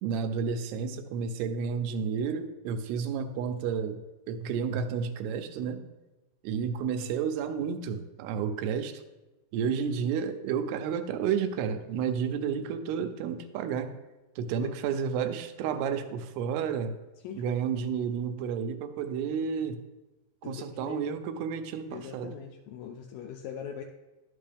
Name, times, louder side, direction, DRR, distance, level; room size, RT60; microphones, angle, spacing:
voice 1, 0.0-4.0 4.3-5.9 6.4-9.0 9.5-13.9 14.4-16.9 17.3-19.8 20.4-22.4, right 7 dB, 90° right, 8 dB, 2.7 m, -31 dB
voice 2, 17.2-17.6 20.4-21.0 21.9-23.8, left 8 dB, 85° left, 3 dB, 2.0 m, -41 dB
11.5 x 5.9 x 3.4 m, 1.1 s
omnidirectional pair, 4.6 m